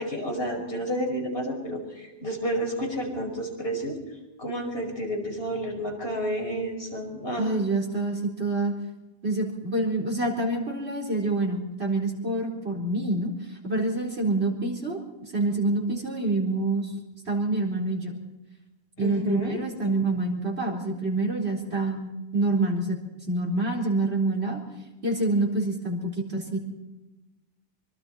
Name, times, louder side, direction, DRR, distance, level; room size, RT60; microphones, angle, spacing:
voice 1, 0.0-4.0 4.4-7.5 19.0-19.5, equal, 65° left, 1 dB, 5.6 m, -30 dB
voice 2, 7.4-8.7 9.2-13.3 13.6-15.0 15.3-16.9 17.3-18.2 19.0-23.0 23.3-24.6 25.0-26.6, right 2 dB, 85° right, 0 dB, 4.4 m, -26 dB
24.5 x 23.5 x 4.4 m, 1.1 s
omnidirectional pair, 1.1 m